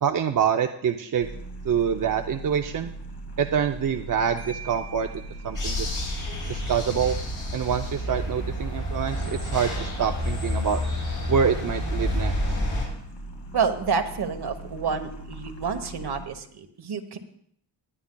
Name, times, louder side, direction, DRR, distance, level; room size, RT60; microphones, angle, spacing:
voice 1, 0.0-1.3 1.6-2.9 3.4-5.1 5.4-5.9 6.5-7.2 7.5-10.8 11.3-12.6, right 7 dB, 50° right, 5 dB, 0.6 m, -26 dB
sound 1, 1.2-16.3, right 2 dB, 80° left, 2.0 m, -40 dB
Marimba xylophone, 4.4-6.1, right 6 dB, 5° right, 5.1 m, -45 dB
sound 2, 5.5-12.9, left 1 dB, 50° left, 5.8 m, -29 dB
voice 2, 13.5-17.2, right 5 dB, 70° right, 7 dB, 1.2 m, -28 dB
19.5 x 11.5 x 2.3 m, 0.67 s
wide cardioid pair, 140°, 41 cm